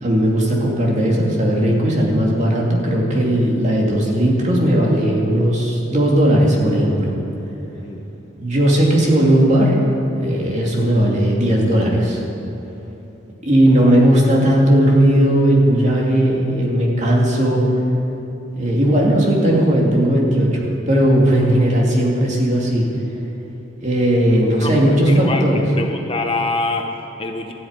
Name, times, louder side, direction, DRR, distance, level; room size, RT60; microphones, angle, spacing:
voice 1, 0.0-7.1 8.4-9.8 10.1-12.2 13.4-17.6 18.5-22.9 23.8-25.6, right 1 dB, 35° right, -3 dB, 2.6 m, -16 dB
voice 2, 24.6-25.5 25.8-27.5, left 3 dB, 25° left, 3 dB, 0.8 m, -25 dB
13.5 x 8.7 x 9.6 m, 3.0 s
head